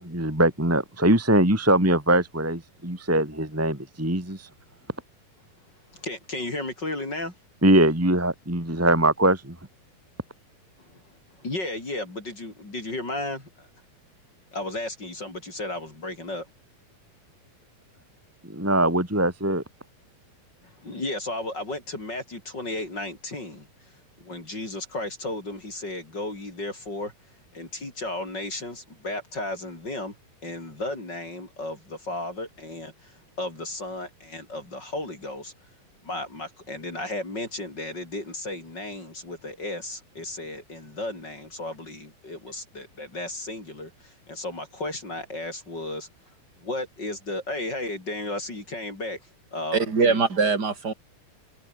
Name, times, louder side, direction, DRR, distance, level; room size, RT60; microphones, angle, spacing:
voice 1, 0.0-4.5 7.6-9.5 18.4-19.6, right 1 dB, 5° right, 3.1 m, -22 dB
voice 2, 5.9-7.3 11.4-13.7 14.5-16.5 20.6-23.7 24.2-27.1 27.5-30.2 30.4-35.5 36.0-46.1 46.6-49.2 49.5-50.2, left 2 dB, 30° left, 5.8 m, -34 dB
voice 3, 49.7-50.9, right 4 dB, 25° right, 3.7 m, -22 dB
omnidirectional pair, 4.2 m